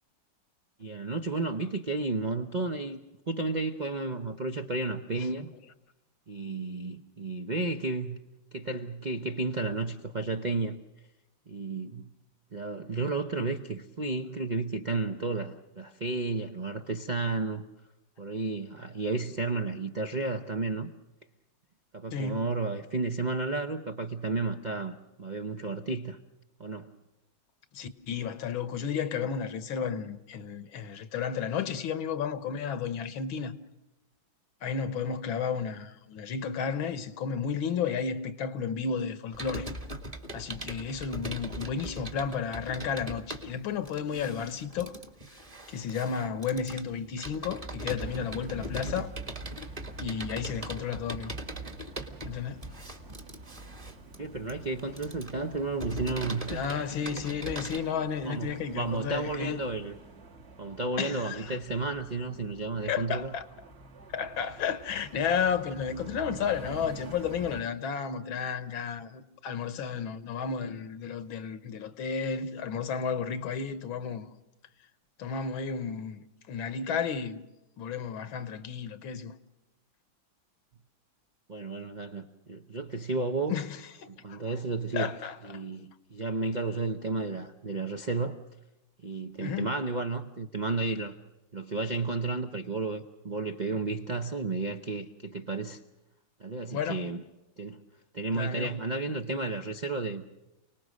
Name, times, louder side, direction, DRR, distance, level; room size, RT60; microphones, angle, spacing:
voice 1, 0.8-3.0 3.3-5.5 6.3-8.2 8.5-10.8 11.5-12.1 12.5-17.6 18.2-20.9 21.9-26.2 26.6-26.9 28.9-29.3 54.2-56.9 58.2-60.0 60.6-63.3 81.5-83.6 84.1-85.1 85.4-88.4 89.0-91.1 91.5-95.8 96.4-97.2 97.6-97.8 98.1-100.2, right 3 dB, 50° right, 0.5 m, -32 dB
voice 2, 22.1-22.4 27.7-33.6 34.6-39.7 40.3-45.0 45.7-49.1 50.0-51.3 52.2-52.7 56.5-59.6 61.0-61.6 62.8-63.5 64.1-74.3 75.2-77.4 77.8-79.3 83.5-84.5 84.9-85.6 89.4-89.7 96.7-97.0 98.3-98.7, left 6 dB, 85° left, 1.9 m, -32 dB
Computer keyboard, 39.3-57.8, right 1 dB, 20° right, 1.4 m, -40 dB
sound 1, 48.0-67.6, right 2 dB, 35° right, 1.5 m, -48 dB
29.5 x 19.5 x 6.4 m
omnidirectional pair, 2.2 m